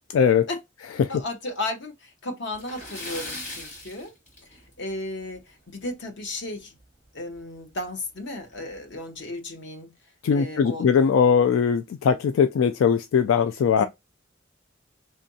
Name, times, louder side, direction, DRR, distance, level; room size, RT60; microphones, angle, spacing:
voice 1, 0.1-0.5 1.0-1.1 10.2-13.9, left 7 dB, 90° left, 0.3 m, -20 dB
voice 2, 1.1-4.1 4.5-6.8 7.1-9.9 10.3-10.9 13.8-13.9, left 2 dB, 65° left, 0.9 m, -34 dB
Splash splatter, 2.5-4.9 5.2-5.4 5.8-5.9 7.4-7.5 7.8-7.9 8.5-8.8, left 2 dB, 40° left, 1.8 m, -38 dB
3.7 x 3.3 x 2.7 m
head